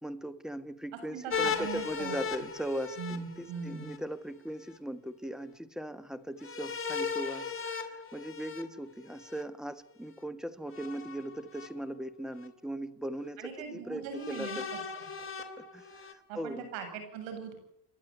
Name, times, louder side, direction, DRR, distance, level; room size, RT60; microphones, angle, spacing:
voice 1, 0.0-14.6 15.6-16.7, right 1 dB, ahead, 12 dB, 1.5 m, -39 dB
voice 2, 1.1-2.2 3.0-3.9 13.4-14.6 16.3-17.6, right 6 dB, 75° right, 6 dB, 7.8 m, -40 dB
sound 1, 1.3-4.0 6.4-9.4 10.7-11.7 12.4-12.5 14.1-16.1, left 6 dB, 25° left, 3.2 m, -37 dB
29.5 x 12.0 x 9.3 m, 0.77 s
cardioid pair, 110°, 46 cm